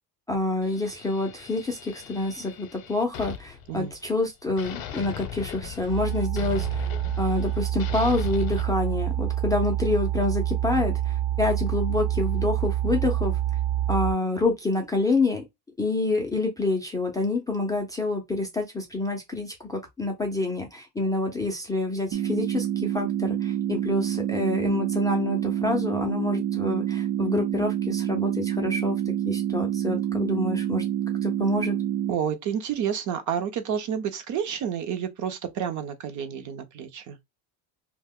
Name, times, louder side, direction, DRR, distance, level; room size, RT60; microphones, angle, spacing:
voice 1, 0.3-6.9 7.2-13.4 13.9-15.4 15.8-30.8 31.2-31.8, left 2 dB, 10° left, 0.4 m, -27 dB
sound 1, 0.6-4.2 4.6-8.6, left 9 dB, 55° left, 0.7 m, -39 dB
sound 2, 5.9-14.1, right 13 dB, 65° right, 1.1 m, -27 dB
sound 3, 22.1-32.1, right 11 dB, 90° right, 0.6 m, -27 dB
voice 2, 32.1-37.2, right 8 dB, 45° right, 0.6 m, -30 dB
2.5 x 2.2 x 3.5 m
cardioid pair, 165°, 43 cm